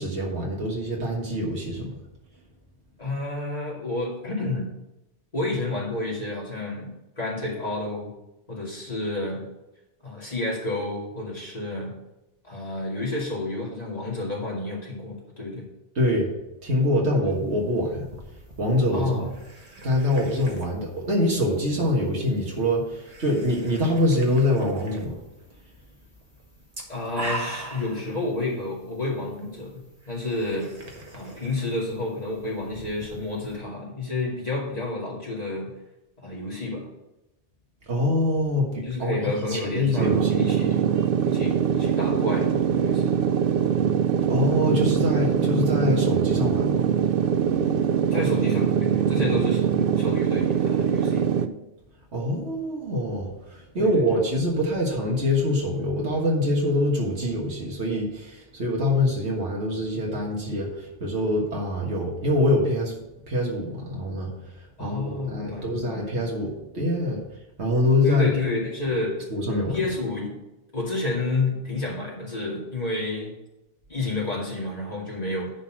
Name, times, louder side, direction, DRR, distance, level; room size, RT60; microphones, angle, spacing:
voice 1, 0.0-1.9 16.0-16.3 16.6-18.1 18.6-19.3 19.8-25.2 37.9-40.4 44.2-46.8 52.1-62.9 63.3-64.3 64.8-67.2 67.6-68.4 69.3-69.8, left 1 dB, 85° right, -2 dB, 1.9 m, -24 dB
voice 2, 3.0-4.7 5.3-6.9 7.2-8.1 8.5-9.4 10.0-11.9 12.5-15.6 18.9-19.3 26.9-30.7 31.1-35.7 36.2-36.9 38.8-41.0 41.3-43.2 48.1-51.3 53.8-54.2 64.8-66.1 68.0-69.3 69.7-70.3 70.7-73.3 73.9-75.5, left 2 dB, 35° left, -5 dB, 2.6 m, -30 dB
sound 1, 17.3-33.6, right 2 dB, 35° right, 1.3 m, -42 dB
sound 2, 40.0-51.5, right 8 dB, 65° right, 0.7 m, -23 dB
10.0 x 4.1 x 6.0 m, 0.94 s
omnidirectional pair, 1.1 m